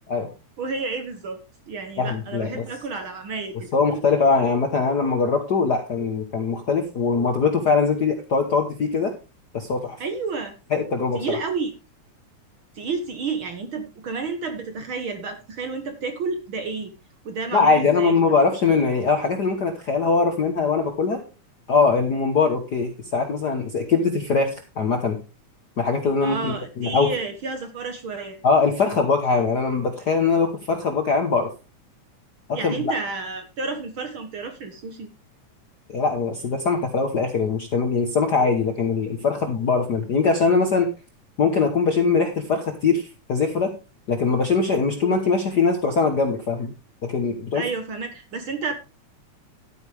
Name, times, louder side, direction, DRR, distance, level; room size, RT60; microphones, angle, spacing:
voice 1, 0.6-3.7 10.0-10.6 11.1-11.7 12.7-16.9 17.2-18.2 26.2-28.4 32.5-35.1 47.5-48.7, right 4 dB, 55° right, 7 dB, 1.7 m, -30 dB
voice 2, 2.0-2.6 3.7-9.1 9.5-10.0 10.7-11.4 17.5-21.2 21.7-25.2 25.8-27.1 28.4-31.5 32.5-32.9 35.9-40.9 41.4-43.7 44.1-46.7 47.0-47.6, left 4 dB, 55° left, 4 dB, 1.2 m, -22 dB
12.0 x 9.2 x 3.4 m, 0.29 s
omnidirectional pair, 3.4 m